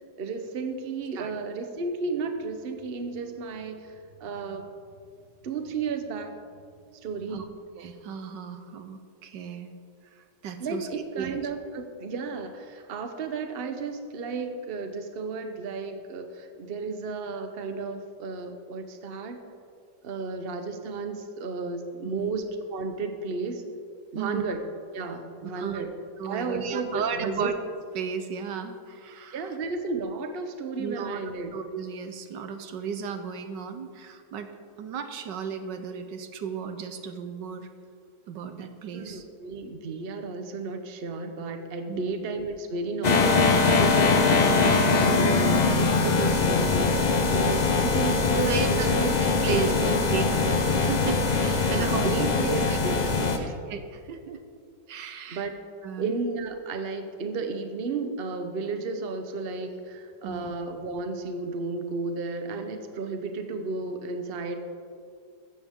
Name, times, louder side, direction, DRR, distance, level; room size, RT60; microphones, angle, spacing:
voice 1, 0.2-4.7 5.4-6.4 7.0-7.4 10.6-19.4 20.0-22.5 22.7-23.6 24.1-24.6 24.9-25.9 26.2-27.5 29.3-31.5 38.9-49.1 49.4-49.8 51.7-53.5 55.3-55.5 56.0-64.5, right 4 dB, 40° right, 6 dB, 1.0 m, -33 dB
voice 2, 7.8-9.7 10.1-10.9 11.1-11.3 22.0-22.3 24.1-24.4 25.5-25.9 26.2-27.5 27.9-29.5 30.8-31.2 31.5-37.7 38.3-39.3 41.9-42.1 48.5-48.9 49.4-49.7 50.1-52.8 53.4-54.4 54.9-55.5 55.8-56.1 60.2-60.5, right 6 dB, 80° right, 8 dB, 1.5 m, -34 dB
sound 1, 43.0-53.4, left 3 dB, 45° left, 0.6 m, -22 dB
15.5 x 14.0 x 3.7 m, 2.2 s
omnidirectional pair, 1.9 m